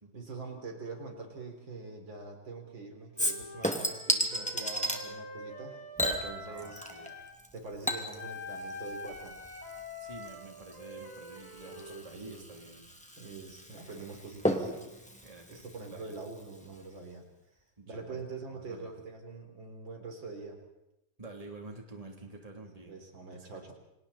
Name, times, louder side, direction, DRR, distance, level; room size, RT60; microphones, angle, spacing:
voice 1, 0.1-6.8 7.5-9.3 11.6-12.6 13.2-15.0 15.5-17.3 17.9-20.6 22.9-23.7, right 3 dB, 65° right, 3 dB, 4.3 m, -44 dB
Wind instrument woodwind instrument, 3.1-7.4 8.2-12.1, left 1 dB, 20° left, 4.3 m, -45 dB
Chink clink / Liquid, 3.2-5.0 6.0-7.1 7.4-16.4 16.8-16.9, equal, 5° left, 2.2 m, -35 dB
voice 2, 6.5-7.1 10.0-12.9 13.7-14.1 15.2-16.1 17.8-18.9 21.2-23.0 23.3-23.7, right 2 dB, 15° right, 1 dB, 3.3 m, -49 dB
29.5 x 26.0 x 4.3 m, 0.90 s
omnidirectional pair, 2.2 m